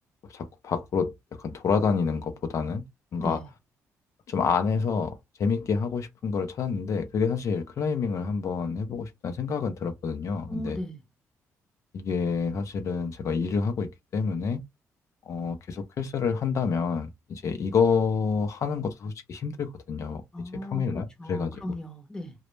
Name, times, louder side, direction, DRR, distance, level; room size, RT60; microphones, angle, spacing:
voice 1, 0.3-2.8 3.1-3.4 4.3-10.8 11.9-14.6 15.3-20.2 20.7-21.6, left 5 dB, 60° left, 0.4 m, -28 dB
voice 2, 10.5-11.0 20.3-20.9 21.2-22.3, left 1 dB, 10° left, 0.7 m, -36 dB
2.0 x 2.0 x 3.0 m
cardioid pair, 85°, 6 cm